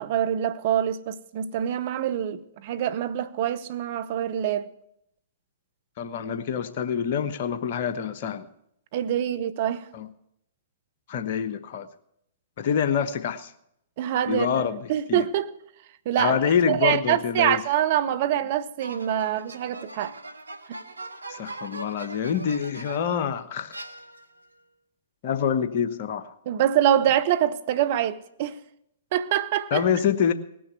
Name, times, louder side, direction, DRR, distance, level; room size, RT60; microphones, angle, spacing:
voice 1, 0.0-4.7 8.9-9.9 14.0-14.6 14.9-15.5 16.1-16.4 16.7-20.2 20.7-20.8 26.5-28.6 29.1-29.8, right 11 dB, 50° right, 0.8 m, -25 dB
voice 2, 6.0-8.5 9.9-10.1 11.1-11.9 12.6-13.5 14.3-14.8 15.1-15.3 16.2-17.6 21.3-23.8 25.2-26.3 29.7-30.3, left 7 dB, 50° left, 1.1 m, -26 dB
sound 1, 18.8-23.2 23.7-24.5, right 2 dB, 85° right, 0.9 m, -41 dB
18.5 x 6.3 x 8.1 m
figure-of-eight pair, 110°, 0 cm